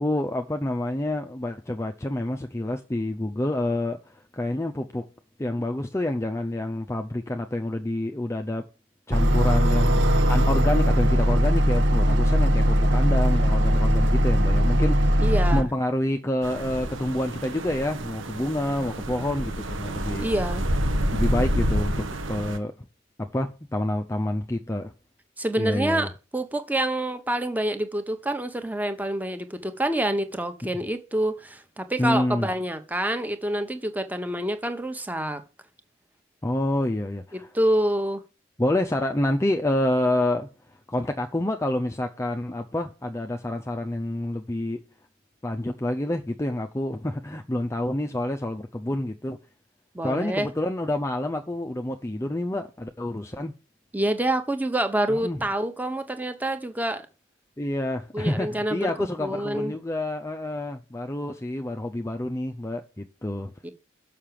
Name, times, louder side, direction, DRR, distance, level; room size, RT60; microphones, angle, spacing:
voice 1, 0.0-5.0 5.4-8.6 9.1-9.9 10.3-20.3 21.1-22.7 23.2-24.9 25.6-26.1 32.0-32.5 36.4-37.5 38.6-40.5 40.9-44.8 45.4-49.4 50.0-53.5 55.1-55.4 57.6-63.5, left 1 dB, 15° left, 0.5 m, -28 dB
sound 1, 9.1-15.6, equal, 65° right, 1.3 m, -20 dB
voice 2, 15.2-15.7 20.1-20.6 25.4-35.4 37.3-38.2 49.9-50.5 53.9-57.1 58.1-59.7 63.6-63.7, right 1 dB, 10° right, 1.0 m, -27 dB
sound 2, 16.4-22.6, equal, 85° right, 1.3 m, -28 dB
6.6 x 5.8 x 7.4 m
head